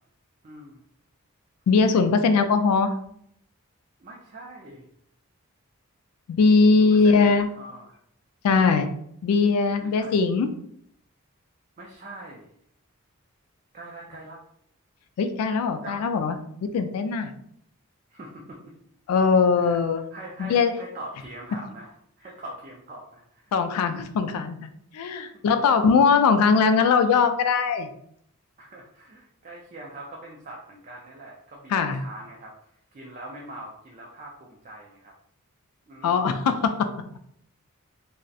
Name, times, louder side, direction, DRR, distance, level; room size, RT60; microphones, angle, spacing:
voice 1, 0.4-0.8 4.0-4.9 6.8-8.0 9.8-10.2 11.8-12.5 13.7-14.4 15.8-16.0 18.1-18.7 19.1-19.2 19.6-19.8 20.1-23.5 25.3-25.4 28.6-32.5 32.9-35.1 35.9-36.5, right 1 dB, 35° right, -2 dB, 0.3 m, -43 dB
voice 2, 1.7-2.9 6.3-7.5 8.4-8.9 9.2-10.5 15.2-16.4 16.7-17.3 19.1-20.0 20.4-20.7 23.5-27.9 31.7-32.0 36.0-36.8, left 5 dB, 80° left, 8 dB, 0.3 m, -20 dB
2.3 x 2.0 x 2.6 m, 0.70 s
head